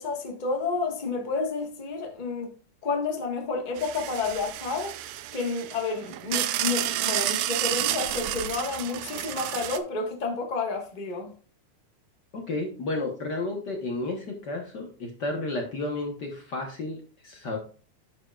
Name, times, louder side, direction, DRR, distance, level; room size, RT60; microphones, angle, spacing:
voice 1, 0.0-2.5 2.8-5.0 5.3-11.3, left 4 dB, 85° left, 0.4 m, -30 dB
sound 1, 3.8-9.8, right 13 dB, 80° right, 1.6 m, -30 dB
voice 2, 12.3-17.6, left 2 dB, 60° left, 1.1 m, -32 dB
10.5 x 6.8 x 2.4 m
omnidirectional pair, 3.6 m